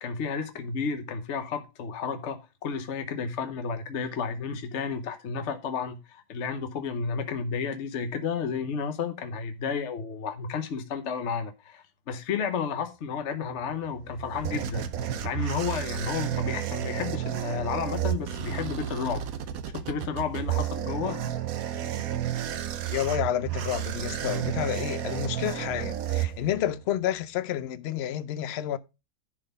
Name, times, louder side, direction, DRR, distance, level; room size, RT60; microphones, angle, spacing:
voice 1, 0.0-19.2 19.7-21.2, left 6 dB, 55° left, 1.0 m, -32 dB
sound 1, 13.8-26.8, right 11 dB, 65° right, 1.1 m, -32 dB
voice 2, 22.9-28.8, left 11 dB, 75° left, 0.5 m, -30 dB
10.5 x 4.0 x 5.2 m
omnidirectional pair, 1.7 m